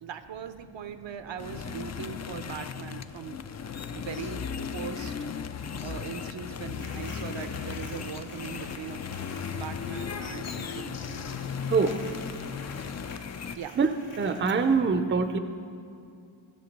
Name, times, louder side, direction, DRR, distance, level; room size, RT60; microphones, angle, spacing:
voice 1, 0.0-5.1 5.8-9.0 9.5-11.2 13.5-13.8, right 7 dB, 65° right, 9 dB, 0.7 m, -40 dB
sound 1, 1.4-13.6, left 6 dB, 35° left, 0.4 m, -36 dB
sound 2, 6.7-14.8, left 2 dB, 90° left, 2.3 m, -48 dB
voice 2, 14.2-15.4, right 4 dB, 25° right, 9 dB, 0.5 m, -24 dB
15.5 x 6.5 x 5.3 m, 2.4 s
wide cardioid pair, 100°, 49 cm